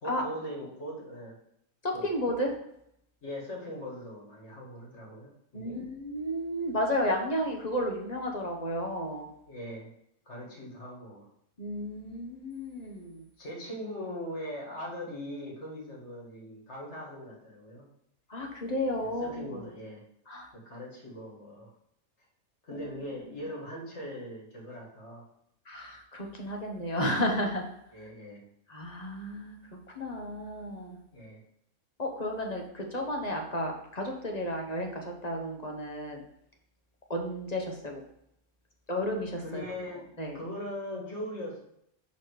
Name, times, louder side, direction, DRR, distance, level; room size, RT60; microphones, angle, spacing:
voice 1, 0.0-1.4 1.9-2.1 3.2-5.8 9.5-9.9 10.3-11.3 13.4-17.9 19.0-20.0 20.5-21.7 22.6-25.3 27.9-28.4 31.1-31.4 39.4-40.1 40.3-41.6, equal, 50° left, -2 dB, 2.1 m, -40 dB
voice 2, 1.8-2.6 5.5-9.3 11.6-13.3 18.3-19.6 20.3-20.5 22.7-22.9 25.7-27.7 28.7-29.6 29.9-31.0 32.0-36.2 37.1-38.0 38.9-39.6 40.2-40.4, equal, 30° left, 2 dB, 1.0 m, -32 dB
6.3 x 4.2 x 4.8 m, 0.74 s
omnidirectional pair, 1.5 m